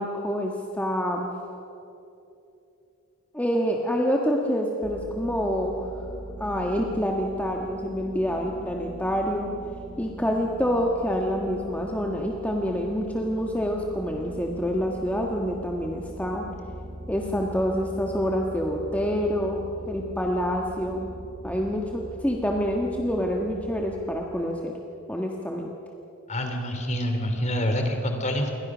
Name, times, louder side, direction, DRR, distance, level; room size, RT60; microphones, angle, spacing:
voice 1, 0.0-1.3 3.3-5.9 6.4-9.5 10.0-16.5 17.1-21.1 21.4-24.7 25.1-25.7, equal, 5° left, 0 dB, 1.5 m, -27 dB
sound 1, 4.8-24.4, right 1 dB, 30° right, 1.1 m, -41 dB
voice 2, 26.3-28.5, equal, 35° left, 4 dB, 3.3 m, -26 dB
29.0 x 23.0 x 6.3 m, 2.8 s
head